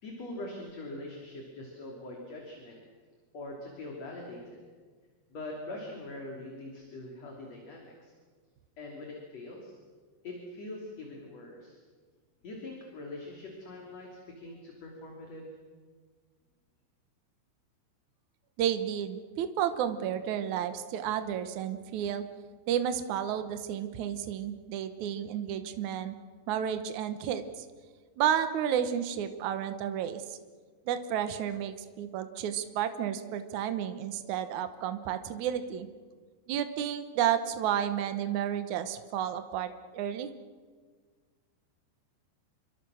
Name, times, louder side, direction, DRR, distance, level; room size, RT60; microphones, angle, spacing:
voice 1, 0.0-2.8 3.3-4.6 5.3-8.1 8.8-9.8 10.2-11.8 12.4-15.4, left 2 dB, 40° left, 0 dB, 3.8 m, -43 dB
voice 2, 18.6-22.2 22.7-26.1 26.5-27.6 28.2-30.4 30.9-35.9 36.5-40.3, right 9 dB, 90° right, 9 dB, 1.6 m, -31 dB
28.0 x 24.0 x 6.4 m, 1.5 s
omnidirectional pair, 5.2 m